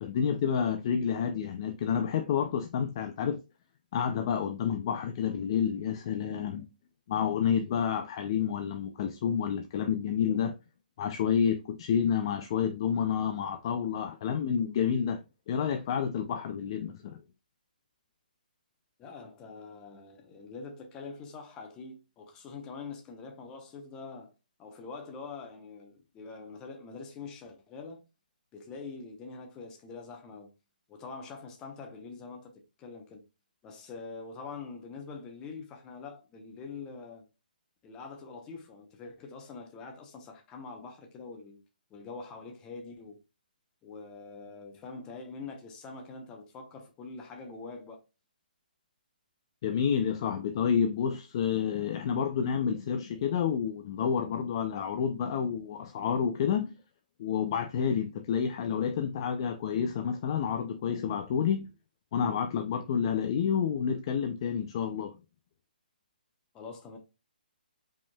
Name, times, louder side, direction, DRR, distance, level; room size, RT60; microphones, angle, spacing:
voice 1, 0.0-3.4 3.9-6.7 7.1-10.5 11.0-17.2 49.6-56.7 57.2-61.7 62.1-65.2, left 7 dB, 30° left, 0.4 m, -29 dB
voice 2, 19.0-24.3 24.6-28.0 28.5-30.5 30.9-32.5 32.8-33.2 33.6-37.2 37.8-41.6 41.9-43.2 43.8-48.0 66.5-67.0, left 4 dB, 15° left, 0.9 m, -44 dB
5.1 x 3.6 x 2.2 m
hypercardioid pair, 165°, 5 cm